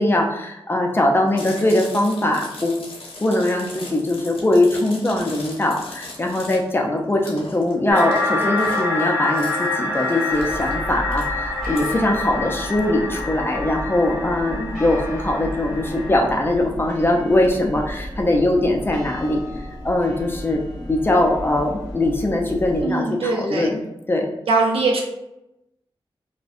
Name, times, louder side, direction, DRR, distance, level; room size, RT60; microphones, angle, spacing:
voice 1, 0.0-2.8 3.2-19.4 19.8-20.6 20.9-23.8 24.1-24.3, left 1 dB, 25° left, 1 dB, 0.4 m, -21 dB
Chewing mastication, 1.3-11.9, left 2 dB, 85° left, 0.7 m, -39 dB
sound 1, 7.9-16.5, left 2 dB, 15° right, 0.8 m, -27 dB
sound 2, 10.3-22.8, equal, ahead, 1.1 m, -34 dB
voice 2, 22.8-23.7 24.5-25.0, right 3 dB, 85° right, 0 dB, 0.5 m, -21 dB
2.5 x 2.1 x 2.4 m, 0.90 s
wide cardioid pair, 120°, 9 cm